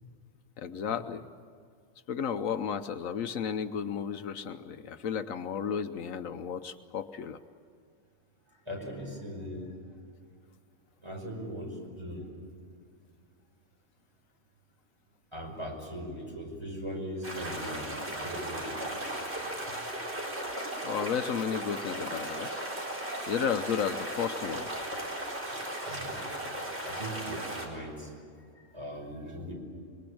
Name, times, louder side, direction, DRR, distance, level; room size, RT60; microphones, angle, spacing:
voice 1, 0.6-1.3 2.1-7.4 20.8-22.6 23.3-24.7, left 7 dB, 75° left, 9 dB, 1.2 m, -33 dB
voice 2, 8.7-9.7 11.0-12.3 15.3-18.9 25.1-25.2 25.5-26.2 26.8-28.1 28.5-29.6, equal, 20° right, 0 dB, 5.6 m, -40 dB
sound 1, 17.2-27.7, right 1 dB, 50° right, 4.5 m, -36 dB
25.5 x 22.5 x 8.7 m, 2.2 s
omnidirectional pair, 1.4 m